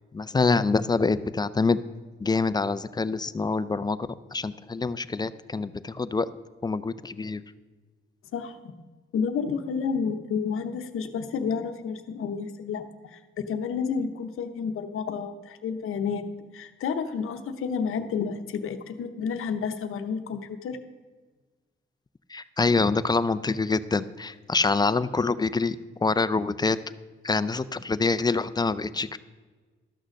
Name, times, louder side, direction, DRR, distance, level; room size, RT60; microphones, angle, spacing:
voice 1, 0.1-1.8 2.2-4.0 4.3-6.3 6.6-7.4 22.3-26.8 27.2-29.2, left 4 dB, 20° left, 15 dB, 0.4 m, -25 dB
voice 2, 9.1-16.2 16.5-20.8, left 6 dB, 85° left, 8 dB, 0.8 m, -30 dB
12.5 x 6.4 x 6.4 m, 1.4 s
cardioid pair, 85°, 21 cm